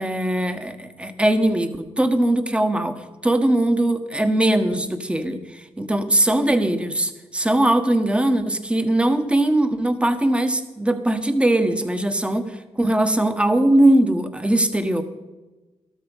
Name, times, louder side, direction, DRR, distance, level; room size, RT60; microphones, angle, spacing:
voice 1, 0.0-3.0 3.2-15.0, right 1 dB, 10° right, 8 dB, 1.4 m, -20 dB
13.0 x 13.0 x 5.6 m, 1.2 s
cardioid pair, 95°, 10 cm